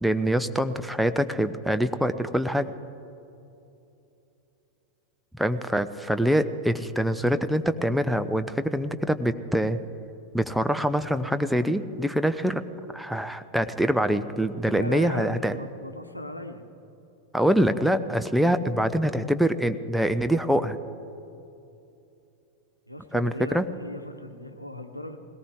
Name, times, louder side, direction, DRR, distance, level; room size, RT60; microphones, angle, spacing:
voice 1, 0.0-2.7 5.3-9.8 10.3-12.6 12.9-15.6 17.3-20.8 23.1-23.6, equal, ahead, 9 dB, 0.6 m, -24 dB
voice 2, 14.6-16.7 22.9-25.2, left 1 dB, 85° left, 7 dB, 1.0 m, -37 dB
20.0 x 18.0 x 3.6 m, 2.8 s
figure-of-eight pair, 90°, 0 cm